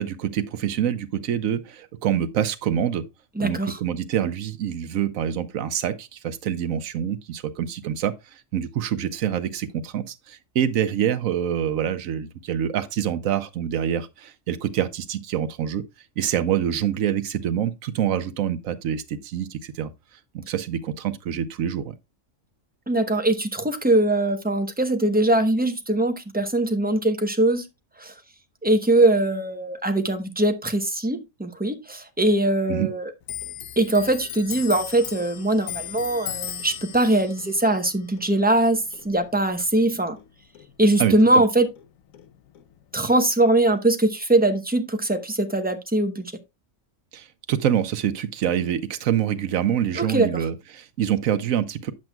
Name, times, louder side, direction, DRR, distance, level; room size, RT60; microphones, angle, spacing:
voice 1, 0.0-3.0 3.4-8.1 8.5-15.8 16.2-19.9 20.3-21.9 32.7-32.9 41.0-41.4 47.1-51.9, right 9 dB, 85° right, 1.2 m, -26 dB
voice 2, 3.4-3.8 22.9-27.7 28.0-28.1 28.6-33.0 33.8-40.2 40.8-41.7 42.9-46.3 50.0-50.4, right 1 dB, 10° right, 0.6 m, -21 dB
Clock, 33.2-40.3 40.6-41.9 42.1-43.0, left 10 dB, 85° left, 1.1 m, -37 dB
9.5 x 7.6 x 2.2 m
omnidirectional pair, 1.4 m